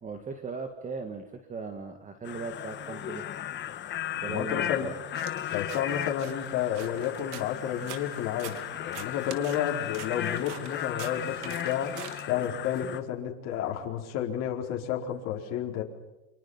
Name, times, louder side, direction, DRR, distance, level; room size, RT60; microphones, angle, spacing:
voice 1, 0.0-3.3 4.1-4.9, right 4 dB, 20° right, 7 dB, 2.0 m, -38 dB
sound 1, 2.3-13.0, left 11 dB, 30° left, 1.6 m, -36 dB
voice 2, 4.3-4.9 5.5-15.8, left 9 dB, 50° left, 0 dB, 4.4 m, -31 dB
sound 2, 5.1-12.8, right 11 dB, 75° right, 2.7 m, -46 dB
29.5 x 26.0 x 5.7 m, 1.0 s
supercardioid pair, 130°, 35 cm